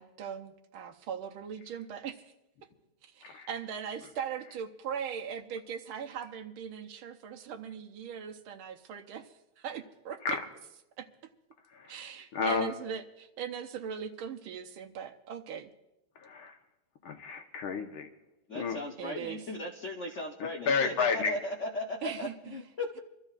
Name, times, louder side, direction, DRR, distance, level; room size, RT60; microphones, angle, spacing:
voice 1, 0.0-2.3 3.0-10.4 11.0-11.1 11.8-15.7 19.0-19.4 22.0-22.6, right 7 dB, 80° right, 6 dB, 1.7 m, -40 dB
voice 2, 12.3-12.7 16.2-16.6 17.0-18.1 18.6-18.8 20.4-21.4, left 5 dB, 75° left, 5 dB, 1.9 m, -31 dB
voice 3, 18.5-22.9, left 2 dB, 55° left, 1 dB, 0.8 m, -37 dB
27.0 x 13.0 x 2.4 m, 0.92 s
omnidirectional pair, 2.3 m